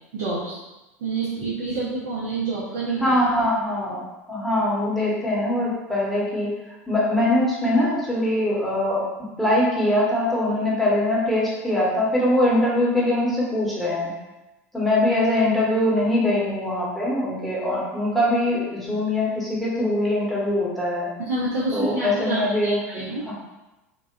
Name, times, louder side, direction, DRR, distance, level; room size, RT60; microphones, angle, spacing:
voice 1, 0.1-0.6 1.0-3.1 21.2-23.2, right 3 dB, 65° right, -7 dB, 0.7 m, -28 dB
voice 2, 3.0-4.0 4.3-6.5 6.9-9.0 9.4-14.1 14.7-21.1 21.7-22.8 23.2-23.3, left 1 dB, ahead, -7 dB, 1.1 m, -22 dB
3.0 x 2.4 x 2.5 m, 1.0 s
hypercardioid pair, 80°, 8 cm